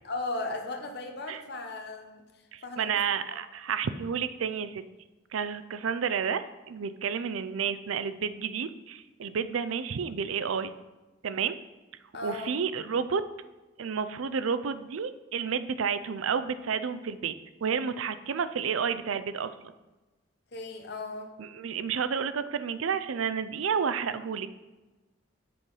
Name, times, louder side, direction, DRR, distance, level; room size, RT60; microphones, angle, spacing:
voice 1, 0.0-2.2 2.6-2.9 3.3-3.4 12.1-12.6 20.5-21.3, left 2 dB, 55° left, 4 dB, 1.0 m, -36 dB
voice 2, 2.5-4.8 5.3-10.7 11.2-11.6 12.2-13.2 13.8-17.3 17.6-19.5 21.4-24.5, right 6 dB, 90° right, 12 dB, 0.5 m, -30 dB
7.7 x 4.9 x 5.5 m, 1.2 s
head